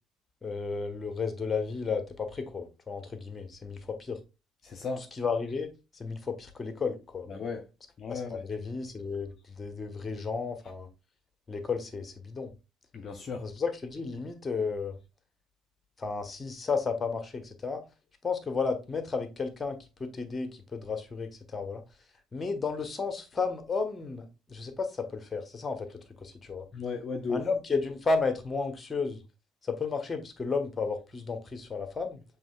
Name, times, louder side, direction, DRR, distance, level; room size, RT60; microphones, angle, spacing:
voice 1, 0.4-4.2 5.1-5.7 5.9-7.3 8.1-9.3 9.6-10.9 11.5-12.5 13.4-14.9 16.0-17.8 18.2-21.8 22.3-26.7 27.3-29.2 29.6-32.2, left 4 dB, 30° left, 1.2 m, -33 dB
voice 2, 4.6-5.1 7.3-7.7 8.0-8.5 12.9-13.5 26.7-27.4, left 5 dB, 45° left, 0.6 m, -35 dB
6.9 x 3.3 x 2.3 m
hypercardioid pair, 50°, 0 cm